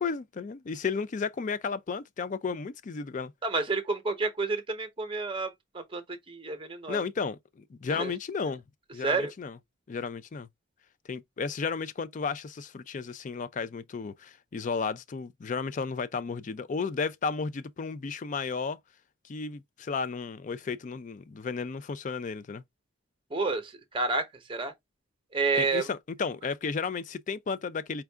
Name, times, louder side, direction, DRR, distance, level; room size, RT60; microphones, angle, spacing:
voice 1, 0.0-3.3 6.9-8.6 8.9-9.6 9.9-10.5 11.1-18.8 19.2-22.6 25.6-28.0, left 5 dB, 40° left, 0.3 m, -33 dB
voice 2, 3.4-7.0 7.9-8.1 9.0-9.3 23.3-24.7 25.3-25.9, right 3 dB, 25° right, 0.8 m, -30 dB
4.5 x 2.4 x 3.3 m
head